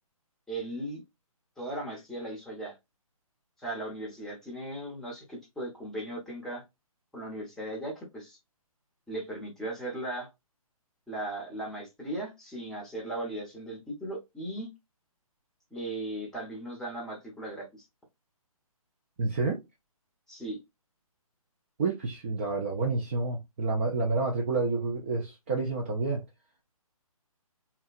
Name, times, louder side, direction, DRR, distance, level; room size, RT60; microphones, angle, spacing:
voice 1, 0.5-1.0 1.6-2.7 3.6-6.6 7.1-8.4 9.1-10.3 11.1-14.7 15.7-17.7 20.3-20.6, right 1 dB, ahead, 0.7 m, -37 dB
voice 2, 19.2-19.6 21.8-26.2, right 3 dB, 20° right, 0.3 m, -29 dB
2.7 x 2.2 x 2.3 m
figure-of-eight pair, 145°, 19 cm